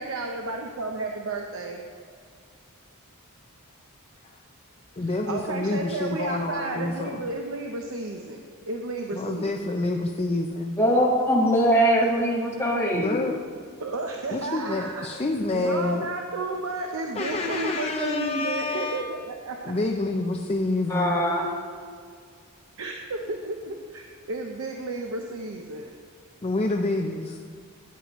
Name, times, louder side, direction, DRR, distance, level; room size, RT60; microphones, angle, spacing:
voice 1, 0.0-1.8 5.0-9.5 13.8-15.1 15.5-19.7 22.8-25.9, right 3 dB, 65° right, 2 dB, 0.8 m, -32 dB
voice 2, 4.9-7.3 9.1-10.8 12.9-13.4 14.3-16.1 17.1-19.0 19.6-21.2 26.4-27.4, left 2 dB, 25° left, 2 dB, 0.5 m, -28 dB
voice 3, 10.8-13.2 20.9-21.5, equal, 10° left, -3 dB, 1.6 m, -22 dB
14.0 x 9.4 x 3.1 m, 2.1 s
head